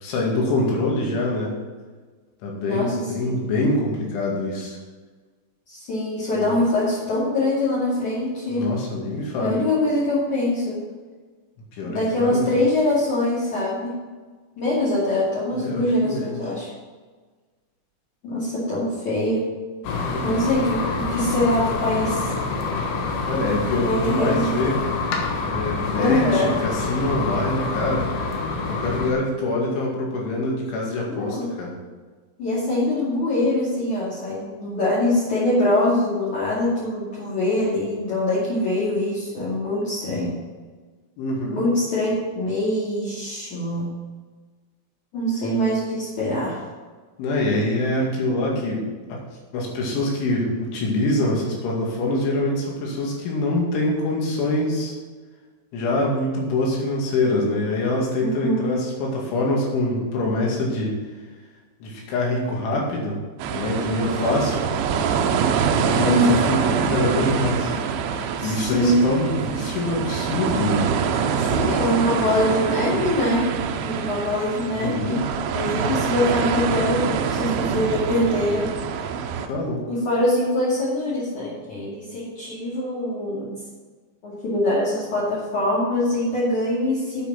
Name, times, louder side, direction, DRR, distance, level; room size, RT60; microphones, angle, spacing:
voice 1, 0.0-1.5 2.4-4.8 6.3-6.5 8.5-9.6 11.7-12.5 15.5-16.4 20.0-20.4 23.3-24.8 25.5-28.1 28.7-31.7 41.2-41.6 47.2-48.8 49.1-49.2 49.5-54.9 55.7-60.9 61.8-63.2 63.5-64.6 65.8-67.8 68.4-70.9 74.7-75.2 79.5-79.8, left 2 dB, 90° left, -2 dB, 4.7 m, -25 dB
voice 2, 2.6-3.4 5.7-8.7 9.4-10.8 11.8-14.0 14.6-16.7 18.2-19.4 20.2-22.3 23.8-24.6 25.9-26.5 31.1-31.5 32.4-40.3 41.5-43.9 45.1-46.6 58.1-58.7 66.0-66.4 68.4-69.0 71.4-73.4 73.8-78.7 79.9-83.5 84.2-87.2, left 1 dB, 45° left, -9 dB, 3.5 m, -23 dB
sound 1, 19.8-29.1, left 3 dB, 65° left, 3.0 m, -26 dB
sound 2, 63.4-79.5, right 6 dB, 90° right, 2.2 m, -25 dB
9.1 x 8.6 x 6.1 m, 1.4 s
omnidirectional pair, 5.3 m